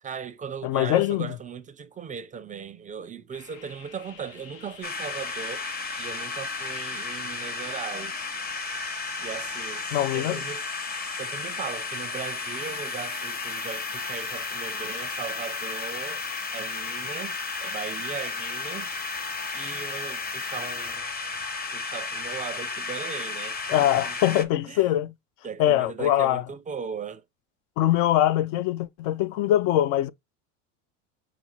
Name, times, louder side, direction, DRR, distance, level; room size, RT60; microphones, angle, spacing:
voice 1, 0.0-5.7 6.0-8.2 9.2-10.7 11.2-16.3 16.5-18.9 19.5-21.1 21.7-24.2 24.7-24.9 25.4-27.2, right 6 dB, 20° right, 0.5 m, -38 dB
voice 2, 0.6-1.3 9.9-10.4 23.7-25.1 25.6-26.4 27.8-30.1, left 13 dB, 65° left, 0.5 m, -23 dB
sound 1, 3.3-21.0, left 9 dB, 80° left, 0.9 m, -47 dB
sound 2, 4.8-24.4, left 4 dB, 25° left, 0.7 m, -33 dB
6.0 x 2.0 x 4.2 m
supercardioid pair, 105°, 38 cm